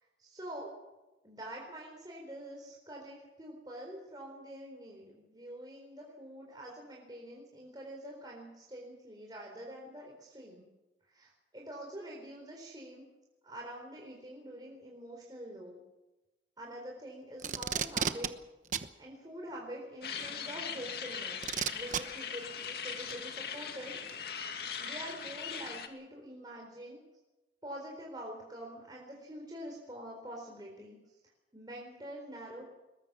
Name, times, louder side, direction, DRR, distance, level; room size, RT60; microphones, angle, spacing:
voice 1, 0.2-0.7 1.2-10.7 11.1-13.1 13.4-15.8 16.6-18.3 19.0-24.0 24.8-27.0 27.6-31.0 31.5-32.6, equal, 25° right, -1 dB, 4.1 m, -46 dB
Packing tape duct tape, 17.4-18.3 18.7-18.9 20.2-20.3 21.4-22.0 23.1-23.2, right 7 dB, 45° right, 1.0 m, -32 dB
sound 1, 20.0-25.9, left 7 dB, 60° left, 2.3 m, -40 dB
22.0 x 21.0 x 6.2 m, 1.1 s
head